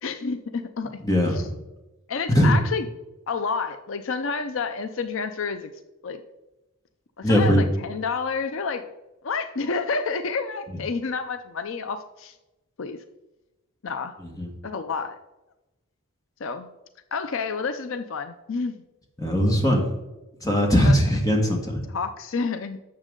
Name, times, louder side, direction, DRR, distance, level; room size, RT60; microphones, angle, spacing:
voice 1, 0.0-1.5 2.1-2.9 3.3-5.7 6.0-6.2 7.2-8.9 9.2-12.4 12.8-13.0 13.8-14.1 14.6-15.2 16.4-16.7 17.1-18.8 20.8-21.0 21.9-22.8, left 4 dB, 65° left, 9 dB, 0.5 m, -29 dB
voice 2, 1.0-1.5 2.3-2.5 7.2-7.6 14.4-14.5 19.2-19.8 20.4-21.8, equal, 15° left, 1 dB, 1.7 m, -20 dB
11.5 x 7.3 x 3.8 m, 1.0 s
head